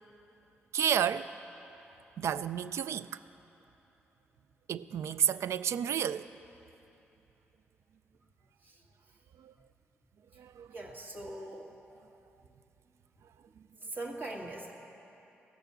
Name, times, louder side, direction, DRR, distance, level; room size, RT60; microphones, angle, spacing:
voice 1, 0.7-1.3 2.2-3.1 4.7-6.3 9.4-9.5 10.4-10.7, right 9 dB, 75° right, 14 dB, 0.3 m, -31 dB
voice 2, 10.7-11.7 13.8-14.7, right 2 dB, 40° right, -1 dB, 1.9 m, -41 dB
16.0 x 6.8 x 6.8 m, 2.9 s
cardioid pair, 60°, 5 cm